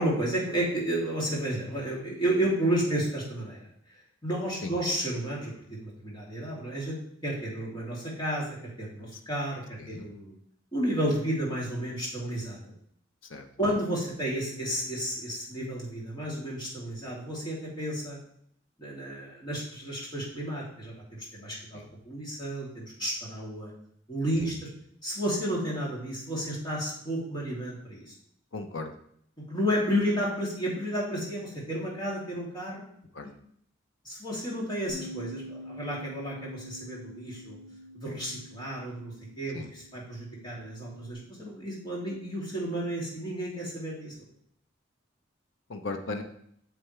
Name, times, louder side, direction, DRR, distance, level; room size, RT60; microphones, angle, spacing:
voice 1, 0.0-3.7 4.2-7.0 7.2-8.5 8.8-10.3 10.7-12.7 13.6-18.2 18.8-23.7 24.1-24.7 25.0-28.1 29.5-32.9 34.0-37.6 37.9-44.1, right 1 dB, 25° left, -5 dB, 3.0 m, -32 dB
voice 2, 28.5-28.9 33.1-33.3 39.5-39.7 45.7-46.2, left 3 dB, 75° left, 5 dB, 0.9 m, -36 dB
Bass guitar, 34.9-41.1, equal, 30° right, 2.8 m, -46 dB
9.2 x 6.8 x 3.4 m, 0.68 s
head